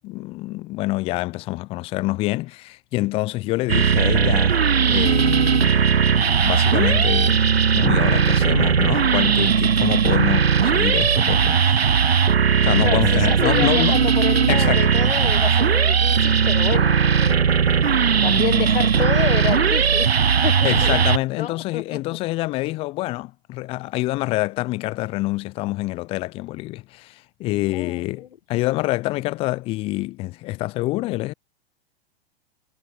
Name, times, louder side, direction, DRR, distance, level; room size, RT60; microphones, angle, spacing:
voice 1, 0.0-4.6 4.9-7.4 7.7-12.0 12.6-14.0 14.5-14.9 20.6-31.3, left 19 dB, 20° left, 0.4 m, -26 dB
sound 1, 3.7-21.2, right 6 dB, 85° right, 0.7 m, -18 dB
voice 2, 12.8-17.6 18.2-20.1 20.4-20.9 21.3-22.0 27.7-28.3, left 10 dB, 65° left, 1.4 m, -29 dB
figure-of-eight pair, 105°, 30 cm